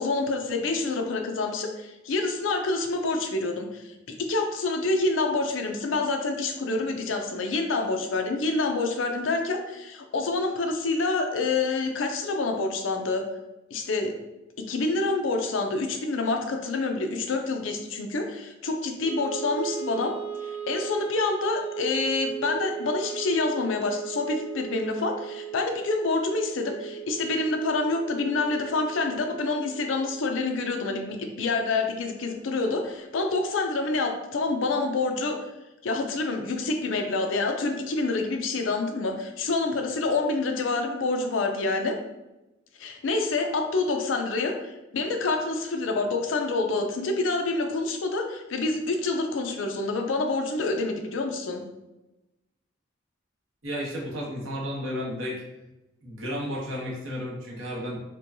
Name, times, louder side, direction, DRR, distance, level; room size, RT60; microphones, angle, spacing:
voice 1, 0.0-3.9 4.2-13.2 13.7-14.1 14.6-20.1 20.4-35.4 35.8-41.9 42.8-51.6, left 3 dB, 75° left, 4 dB, 0.5 m, -27 dB
Wind instrument woodwind instrument, 19.0-31.3, right 9 dB, 25° left, 1.3 m, -37 dB
voice 2, 53.6-55.4 56.0-58.0, equal, 85° right, -4 dB, 1.0 m, -32 dB
4.4 x 2.2 x 2.6 m, 0.99 s
head